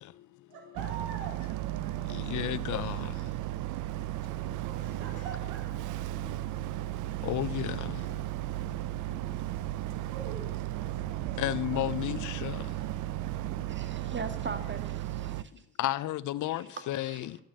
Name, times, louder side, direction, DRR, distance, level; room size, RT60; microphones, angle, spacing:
voice 1, 0.5-2.2 4.6-6.9 9.3-9.6 10.1-11.4 11.7-11.9, right 5 dB, 85° right, 2.9 m, -46 dB
Boat Water vehicle, 0.8-15.4, right 15 dB, 65° right, 0.6 m, -35 dB
voice 2, 2.1-3.0 7.2-7.8 11.4-12.6 15.8-17.4, left 14 dB, 60° left, 0.7 m, -32 dB
voice 3, 13.7-15.7 16.6-17.3, right 4 dB, 35° right, 1.9 m, -41 dB
13.0 x 9.5 x 7.4 m
hypercardioid pair, 45°, 33 cm